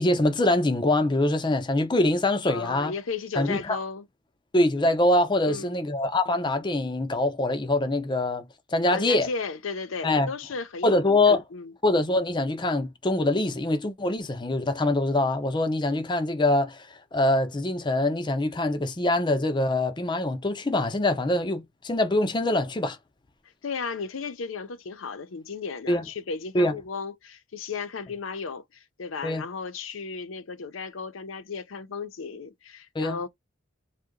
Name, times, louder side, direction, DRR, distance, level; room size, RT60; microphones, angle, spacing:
voice 1, 0.0-2.9 3.4-3.8 4.5-8.4 8.7-9.3 10.0-10.3 10.8-11.4 11.8-16.9 17.1-23.0 25.9-26.0 26.5-26.7 29.2-29.4 32.9-33.2, left 2 dB, 25° left, 0.6 m, -24 dB
voice 2, 2.5-4.1 5.4-5.8 8.9-11.7 23.6-33.3, left 5 dB, 80° left, 0.6 m, -35 dB
2.7 x 2.1 x 3.7 m
head